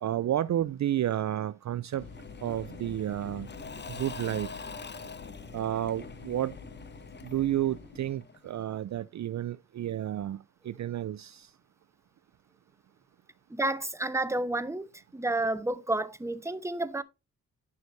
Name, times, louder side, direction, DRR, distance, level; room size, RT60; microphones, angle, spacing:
voice 1, 0.0-2.0 2.4-3.5 3.9-4.5 5.5-6.6 7.2-11.5, right 12 dB, 50° right, 0.5 m, -31 dB
Engine / Mechanisms / Drill, 1.9-8.6, left 4 dB, 30° left, 0.7 m, -45 dB
sound 1, 2.0-8.1, left 3 dB, 75° left, 3.7 m, -47 dB
voice 2, 13.5-17.0, right 2 dB, 10° right, 0.8 m, -30 dB
9.8 x 6.1 x 2.6 m
supercardioid pair, 50°, 36 cm